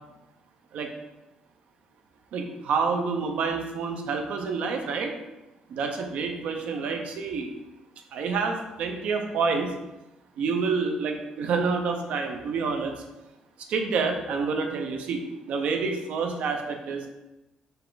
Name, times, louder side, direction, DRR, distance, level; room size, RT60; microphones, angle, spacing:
voice 1, 2.3-5.1 5.7-7.5 8.1-9.7 10.4-12.9 13.7-15.2 15.5-17.1, right 4 dB, 70° right, 4 dB, 0.6 m, -28 dB
5.3 x 2.3 x 3.9 m, 1.0 s
cardioid pair, 125°, 2 cm